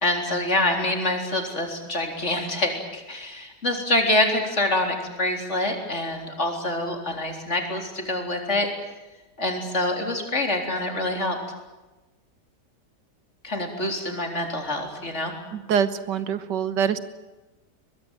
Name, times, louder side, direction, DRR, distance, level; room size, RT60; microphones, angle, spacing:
voice 1, 0.0-8.7 9.4-11.4 13.4-15.3, left 1 dB, 40° left, 3 dB, 4.1 m, -26 dB
voice 2, 15.5-17.0, right 7 dB, 90° right, 13 dB, 1.8 m, -24 dB
22.5 x 21.5 x 9.3 m, 1.1 s
omnidirectional pair, 1.8 m